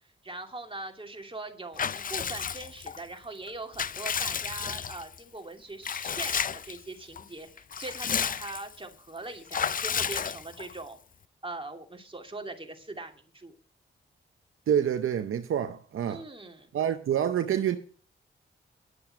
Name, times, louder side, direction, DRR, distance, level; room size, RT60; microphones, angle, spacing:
voice 1, 0.2-11.0 11.4-13.6 16.1-16.7, right 2 dB, 25° right, 2.7 m, -41 dB
Water / Bathtub (filling or washing) / Liquid, 1.8-3.0 3.5-5.2 5.8-6.8 7.2-7.3 7.6-8.8 9.5-10.8, left 7 dB, 40° left, 0.5 m, -32 dB
voice 2, 14.7-16.2 16.7-17.8, right 9 dB, 80° right, 0.7 m, -27 dB
11.0 x 6.8 x 7.5 m
cardioid pair, 50°, 21 cm